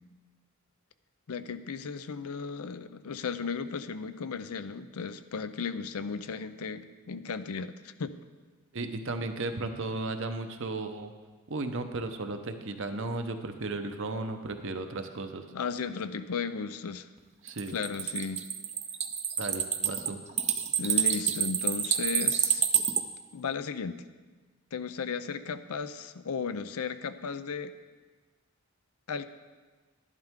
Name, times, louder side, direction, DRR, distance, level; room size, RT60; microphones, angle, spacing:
voice 1, 1.3-8.2 15.5-17.1 17.7-18.4 20.8-22.6 23.3-24.0 24.7-27.7 29.1-29.3, left 5 dB, 80° left, 12 dB, 0.5 m, -35 dB
voice 2, 8.7-11.1 11.5-15.4 17.4-17.8 19.4-20.2, right 2 dB, 55° right, 7 dB, 0.8 m, -35 dB
sound 1, 17.5-23.0, right 8 dB, 30° right, 0.5 m, -28 dB
12.0 x 11.0 x 3.7 m, 1.4 s
head